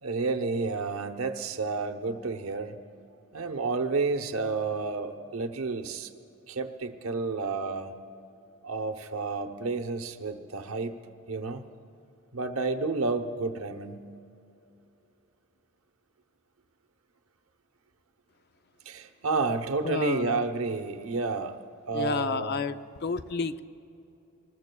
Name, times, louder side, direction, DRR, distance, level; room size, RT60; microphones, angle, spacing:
voice 1, 0.0-2.7 3.3-6.1 6.5-7.9 8.6-11.0 11.3-11.6 12.3-14.0 18.9-22.7, right 4 dB, 85° right, 7 dB, 0.9 m, -30 dB
voice 2, 19.8-20.4 21.9-22.7 23.0-23.6, left 5 dB, 50° left, 12 dB, 0.5 m, -30 dB
25.5 x 20.0 x 2.3 m, 2.8 s
head